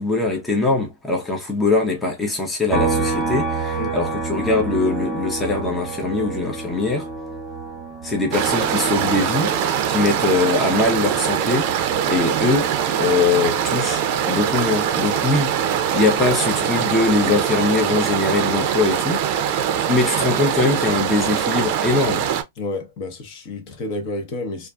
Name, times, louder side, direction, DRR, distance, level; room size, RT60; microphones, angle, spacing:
voice 1, 0.0-7.1 8.0-15.6 15.9-19.3 19.9-22.3, left 3 dB, 10° left, 0.7 m, -22 dB
sound 1, 2.7-16.3 16.6-18.8, right 3 dB, 10° right, 1.2 m, -30 dB
sound 2, 8.3-22.4, right 9 dB, 45° right, 0.5 m, -22 dB
voice 2, 22.6-24.7, left 2 dB, 45° left, 0.9 m, -30 dB
2.4 x 2.4 x 2.3 m
hypercardioid pair, 130°, 0 cm